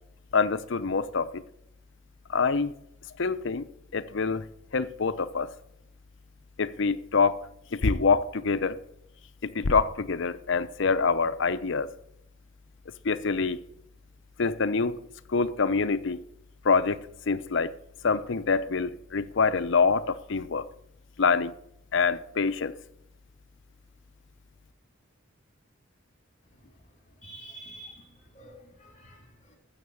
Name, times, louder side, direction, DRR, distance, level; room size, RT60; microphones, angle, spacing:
voice 1, 0.3-1.4 2.3-2.7 3.2-3.7 3.9-4.4 4.7-5.5 6.6-7.4 7.7-8.8 9.4-11.9 13.0-13.6 14.4-15.0 15.3-16.2 16.6-17.7 18.0-20.7 21.2-21.5 21.9-22.7, left 4 dB, 65° left, 0.7 m, -25 dB
voice 2, 27.2-28.1 28.3-29.6, right 2 dB, 40° left, 2.9 m, -47 dB
13.0 x 7.3 x 7.1 m
head